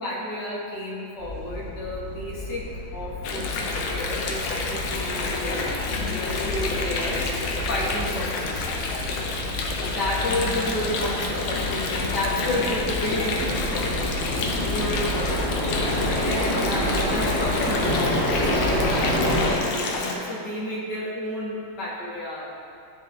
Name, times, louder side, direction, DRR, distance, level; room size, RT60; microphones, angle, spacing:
voice 1, 0.0-8.7 9.8-22.4, left 1 dB, 60° left, -5 dB, 1.8 m, -31 dB
sound 1, 1.2-19.5, left 1 dB, 40° left, 2.0 m, -29 dB
Water, 3.2-20.2, left 3 dB, 90° left, 1.5 m, -29 dB
10.5 x 3.8 x 3.3 m, 2.4 s
omnidirectional pair, 2.2 m